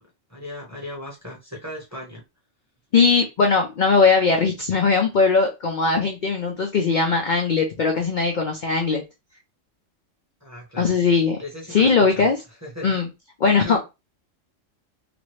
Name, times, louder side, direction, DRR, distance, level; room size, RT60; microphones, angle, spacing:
voice 1, 0.3-2.2 10.4-10.9 11.4-12.3 12.6-12.9 13.6-13.8, left 1 dB, 15° right, 0.9 m, -36 dB
voice 2, 2.9-9.0 10.8-11.4 11.7-12.4 12.8-13.1 13.4-13.8, left 4 dB, 55° left, 0.6 m, -19 dB
2.9 x 2.5 x 3.1 m
omnidirectional pair, 1.3 m